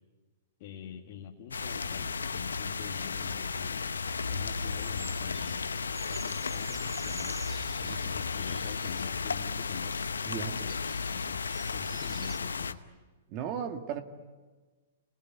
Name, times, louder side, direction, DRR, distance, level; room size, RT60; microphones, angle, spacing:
voice 1, 0.6-5.6 6.1-7.4 7.8-12.8, left 9 dB, 50° left, 1 dB, 1.9 m, -45 dB
sound 1, 1.5-12.7, left 5 dB, 90° left, 0.9 m, -34 dB
sound 2, 1.5-12.4, right 5 dB, 15° right, 1.0 m, -51 dB
voice 2, 10.3-10.6 13.3-14.0, right 8 dB, 40° right, 7 dB, 2.2 m, -36 dB
28.5 x 20.0 x 9.4 m, 1.4 s
hypercardioid pair, 120°, 0 cm